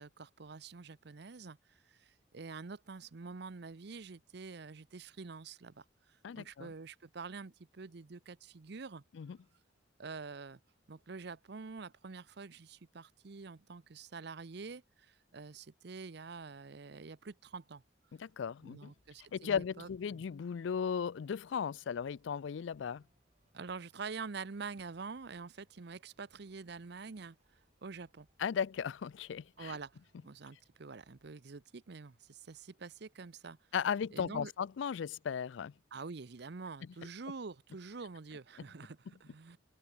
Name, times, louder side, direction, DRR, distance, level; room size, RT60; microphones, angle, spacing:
voice 1, 0.0-1.6 1.9-9.0 10.0-10.6 10.9-17.8 18.6-20.2 23.5-27.4 27.8-28.3 29.6-30.0 30.2-33.6 34.1-34.5 35.9-39.6, right 4 dB, 60° right, 0.7 m, -46 dB
voice 2, 6.2-6.7 9.1-9.4 18.2-18.9 19.3-23.0 28.4-29.7 33.7-35.7, left 7 dB, 75° left, 0.4 m, -36 dB
sound 1, 18.9-31.3, right 1 dB, 35° right, 7.4 m, -76 dB
head